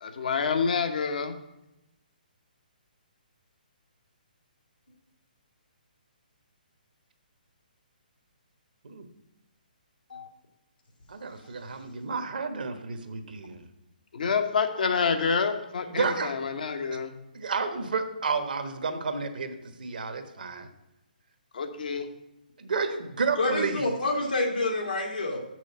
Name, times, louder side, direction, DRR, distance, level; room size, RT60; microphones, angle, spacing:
voice 1, 0.0-1.3 14.1-17.1 21.5-22.1, left 5 dB, 65° left, 7 dB, 1.0 m, -27 dB
voice 2, 11.1-13.7 15.9-16.3 16.9-17.0 17.3-20.7 22.6-24.0, right 4 dB, 70° right, 8 dB, 1.1 m, -31 dB
voice 3, 23.4-25.4, left 2 dB, 85° left, -2 dB, 2.6 m, -28 dB
6.5 x 6.2 x 5.8 m, 0.92 s
figure-of-eight pair, 135°, 5 cm